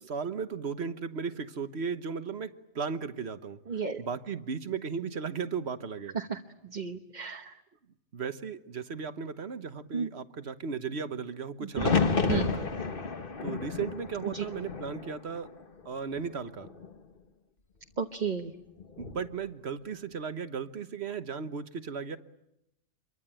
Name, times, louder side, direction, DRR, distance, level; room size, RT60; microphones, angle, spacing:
voice 1, 0.1-3.6 4.0-6.2 8.1-11.9 12.3-12.7 13.4-15.5 15.8-16.7 19.0-22.2, right 6 dB, 60° right, 11 dB, 1.4 m, -36 dB
voice 2, 3.7-4.0 6.1-6.4 6.7-7.5 9.9-10.1 11.6-11.9 12.3-12.5 14.3-14.4 18.0-18.5, right 6 dB, 40° right, 6 dB, 1.2 m, -32 dB
sound 1, 11.7-15.8 16.2-16.9 18.8-19.3, left 5 dB, 45° left, 1.5 m, -31 dB
27.5 x 23.5 x 8.9 m, 0.86 s
omnidirectional pair, 1.3 m